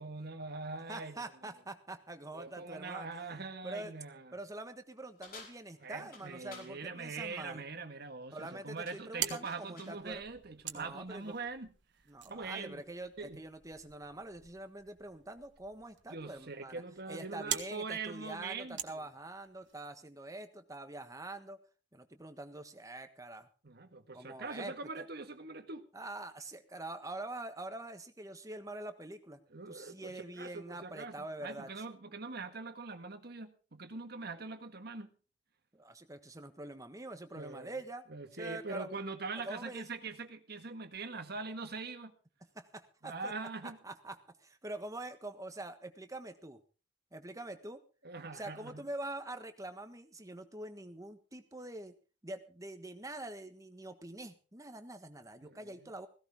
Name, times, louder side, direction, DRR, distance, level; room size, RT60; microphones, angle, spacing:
voice 1, 0.0-1.3 2.3-4.3 5.8-11.7 12.3-12.8 13.2-13.4 16.1-19.0 23.6-25.8 29.5-35.1 37.3-37.7 38.1-42.1 43.0-43.8 48.0-48.8 55.4-55.9, right 4 dB, 60° right, 1.7 m, -43 dB
voice 2, 0.9-3.1 3.6-3.9 4.3-7.6 8.3-10.2 10.7-11.3 12.1-16.8 17.1-21.6 21.9-23.5 24.1-25.0 25.9-29.4 29.7-31.8 35.7-38.0 38.3-38.9 39.4-39.9 42.5-43.3 43.6-46.6 47.1-47.8 48.3-51.9 52.2-56.1, right 2 dB, 20° right, 1.4 m, -45 dB
sound 1, 5.2-6.8 8.2-8.5 8.8-10.0, left 4 dB, 55° left, 4.1 m, -53 dB
sound 2, 8.8-19.7, right 10 dB, 85° right, 1.6 m, -45 dB
16.5 x 16.5 x 3.7 m
head